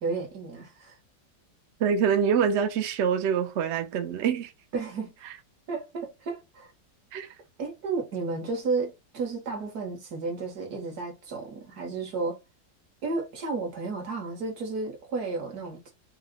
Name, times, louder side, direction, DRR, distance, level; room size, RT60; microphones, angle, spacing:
voice 1, 0.0-1.0 4.7-5.1 5.7-6.7 7.6-12.4 13.0-15.9, right 4 dB, 60° right, 1.7 m, -32 dB
voice 2, 1.8-4.5 7.1-7.3, right 7 dB, 75° right, 0.6 m, -25 dB
4.2 x 2.2 x 3.6 m
omnidirectional pair, 2.0 m